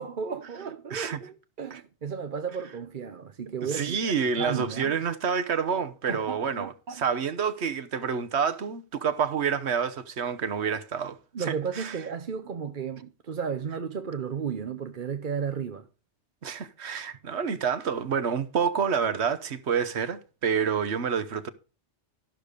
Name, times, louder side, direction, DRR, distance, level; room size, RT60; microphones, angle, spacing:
voice 1, 0.0-4.0 4.4-5.0 6.1-7.0 11.3-15.9, right 6 dB, 50° right, 0.9 m, -34 dB
voice 2, 3.6-12.0 16.4-21.5, right 6 dB, 70° right, 1.2 m, -28 dB
13.5 x 6.7 x 5.0 m
omnidirectional pair, 1.2 m